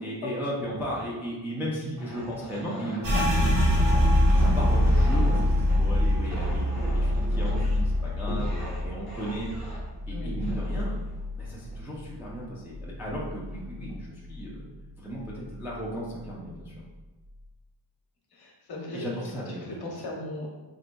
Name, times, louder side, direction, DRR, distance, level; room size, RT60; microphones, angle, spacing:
voice 1, 0.0-4.1 4.6-9.5 10.1-10.9 11.4-14.7 15.0-16.8 18.9-19.7 20.0-20.1, equal, 5° right, -6 dB, 0.3 m, -35 dB
sound 1, 1.9-12.2 12.8-13.1 13.5-14.0, left 1 dB, 15° left, 0.9 m, -42 dB
sound 2, 3.0-12.4 12.7-14.0 14.3-14.8 15.2-15.8, left 1 dB, 75° right, 1.1 m, -25 dB
voice 2, 4.3-4.7 10.1-10.4 18.3-19.1 19.5-20.5, left 2 dB, 60° left, -2 dB, 0.9 m, -37 dB
3.9 x 2.5 x 2.2 m, 1.1 s
wide cardioid pair, 155°, 43 cm